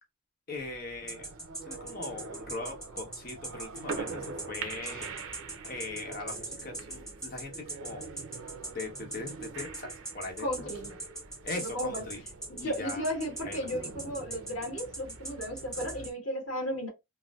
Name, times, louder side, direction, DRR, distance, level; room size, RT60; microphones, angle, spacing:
voice 1, 0.5-1.3 1.7-5.1 5.6-8.1 8.7-10.7 11.4-12.2 12.6-13.0 13.4-13.7, left 3 dB, 45° left, 0.9 m, -40 dB
sound 1, 0.6-16.1, right 4 dB, 80° right, 0.6 m, -44 dB
sound 2, 1.1-16.1, right 2 dB, 5° left, 0.9 m, -40 dB
voice 2, 10.4-10.9 11.6-12.0 12.5-16.9, equal, 90° left, 1.6 m, -34 dB
4.1 x 2.0 x 2.3 m
head